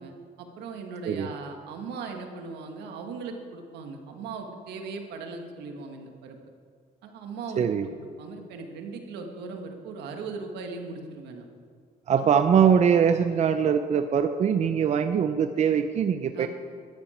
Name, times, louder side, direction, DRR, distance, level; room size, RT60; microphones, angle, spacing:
voice 1, 0.0-6.4 7.0-7.9 8.2-11.5 12.2-12.3 13.3-13.4 16.3-16.5, right 4 dB, 80° right, 4 dB, 1.7 m, -38 dB
voice 2, 7.6-7.9 12.1-16.5, right 7 dB, 40° right, 9 dB, 0.6 m, -22 dB
14.0 x 13.0 x 4.4 m, 2.1 s
cardioid pair, 110°, 17 cm